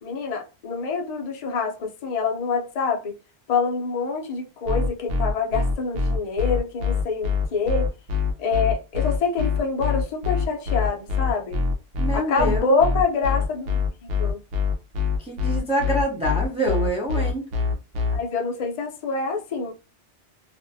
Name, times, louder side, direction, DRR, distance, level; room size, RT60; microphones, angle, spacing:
voice 1, 0.0-3.1 3.5-7.9 8.4-11.6 12.1-14.4 18.1-19.7, left 4 dB, 45° left, 0.5 m, -26 dB
sound 1, 4.6-18.2, left 5 dB, 80° right, 0.9 m, -24 dB
voice 2, 12.0-12.8 15.2-17.5, right 1 dB, 10° right, 0.4 m, -26 dB
2.5 x 2.1 x 2.6 m
omnidirectional pair, 1.2 m